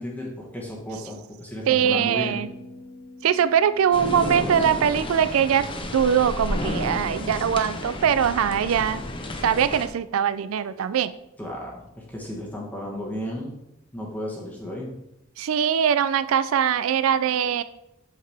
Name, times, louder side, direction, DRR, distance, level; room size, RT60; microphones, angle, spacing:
voice 1, 0.0-2.4 11.4-13.5 13.9-14.9, equal, 10° left, -4 dB, 1.1 m, -34 dB
voice 2, 1.7-2.5 3.2-5.7 5.9-9.0 9.4-11.1 15.4-17.6, right 8 dB, 80° right, 14 dB, 0.4 m, -22 dB
sound 1, 1.8-6.1, right 1 dB, 60° left, 1.5 m, -44 dB
sound 2, 3.9-9.9, left 1 dB, 25° left, 0.7 m, -31 dB
8.2 x 5.8 x 3.4 m, 0.87 s
head